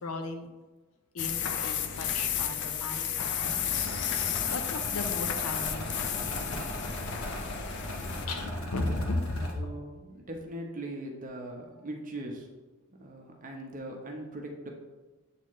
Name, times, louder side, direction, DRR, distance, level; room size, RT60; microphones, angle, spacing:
voice 1, 0.0-0.5 1.1-3.9 4.5-6.2 6.6-6.7 8.2-9.7, left 2 dB, 90° left, 6 dB, 0.8 m, -35 dB
sound 1, 1.2-8.3, left 8 dB, 55° left, 0.4 m, -32 dB
sound 2, 3.4-9.5, left 1 dB, 70° left, 1.1 m, -39 dB
voice 2, 9.5-12.5 13.0-14.7, right 1 dB, 35° right, 1 dB, 0.9 m, -40 dB
7.5 x 4.1 x 3.1 m, 1.2 s
head